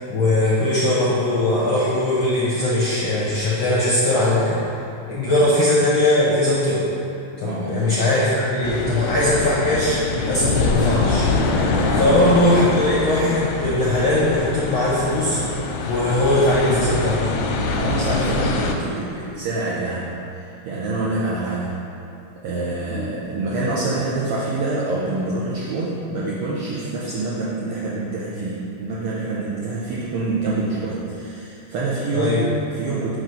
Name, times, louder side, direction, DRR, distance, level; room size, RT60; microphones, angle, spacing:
voice 1, 0.1-4.6 5.1-6.9 7.4-11.3 12.0-15.4 15.9-17.2 22.9-23.1 32.1-32.4, left 1 dB, 70° left, -7 dB, 1.2 m, -20 dB
voice 2, 7.4-7.8 11.8-12.1 17.8-21.8 22.4-33.2, right 2 dB, 75° right, -6 dB, 1.3 m, -26 dB
sound 1, 8.6-18.7, left 3 dB, 85° left, 2.0 m, -24 dB
9.0 x 3.1 x 5.5 m, 2.7 s
omnidirectional pair, 3.4 m